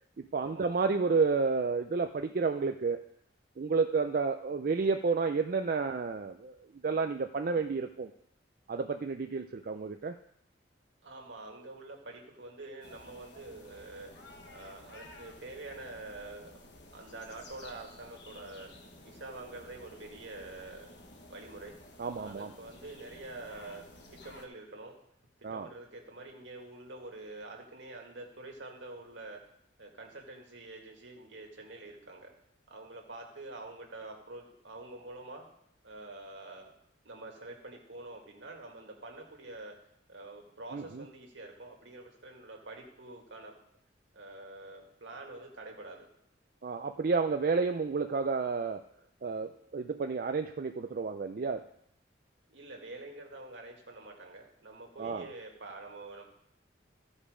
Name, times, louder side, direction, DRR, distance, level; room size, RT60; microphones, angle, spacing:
voice 1, 0.2-3.0 3.6-6.6 6.8-8.1 8.7-10.2 22.0-22.5 25.4-25.7 40.7-41.0 46.6-48.8 49.2-51.6 55.0-55.3, right 4 dB, 50° right, 6 dB, 0.4 m, -31 dB
voice 2, 11.0-14.1 14.5-16.6 16.9-18.7 19.0-20.9 21.3-21.7 22.2-25.0 25.4-29.4 29.8-32.3 32.7-35.5 35.8-36.7 37.1-39.7 40.1-43.6 44.1-46.1 52.5-56.2, right 2 dB, 75° right, 1 dB, 1.9 m, -46 dB
sound 1, 12.8-24.5, left 1 dB, 65° left, 1.3 m, -53 dB
14.0 x 5.3 x 4.9 m, 0.73 s
head